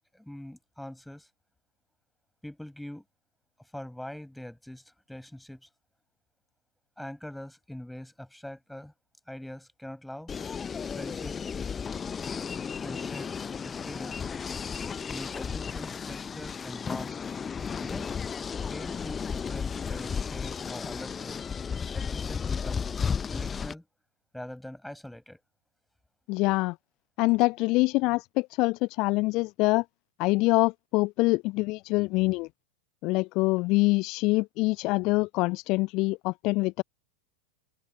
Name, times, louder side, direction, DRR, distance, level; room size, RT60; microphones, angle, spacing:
voice 1, 0.1-1.3 2.4-3.0 3.7-5.7 7.0-8.9 9.3-10.3 11.0-11.4 12.8-14.3 15.1-17.2 17.8-18.1 18.7-21.4 21.9-22.9 23.3-23.9 24.3-25.4, left 1 dB, ahead, 7.0 m, -43 dB
sound 1, 10.3-23.7, left 6 dB, 20° left, 0.9 m, -34 dB
voice 2, 26.3-26.7 27.2-29.8 30.2-32.5 33.0-36.8, left 23 dB, 40° left, 0.5 m, -25 dB
open air
figure-of-eight pair, 90°, 0 cm